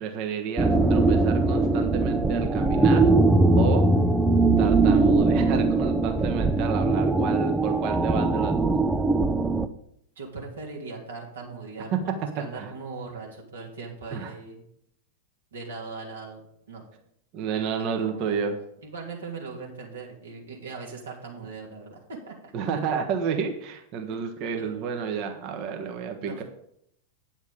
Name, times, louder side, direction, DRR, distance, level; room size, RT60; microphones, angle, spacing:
voice 1, 0.0-3.1 3.6-3.9 4.6-8.7 11.9-12.0 12.5-12.7 14.1-14.3 17.3-18.6 22.5-26.4, right 6 dB, 40° right, 4 dB, 1.3 m, -30 dB
sound 1, 0.6-9.7, right 3 dB, 5° right, 0.5 m, -21 dB
voice 2, 10.2-11.9 12.3-14.6 15.5-16.4 16.7-16.8 17.8-18.4 18.8-22.8 24.1-24.2 24.6-24.8 26.2-26.4, right 4 dB, 65° right, -2 dB, 3.0 m, -39 dB
9.5 x 7.1 x 5.3 m, 0.73 s
figure-of-eight pair, 90°, 0 cm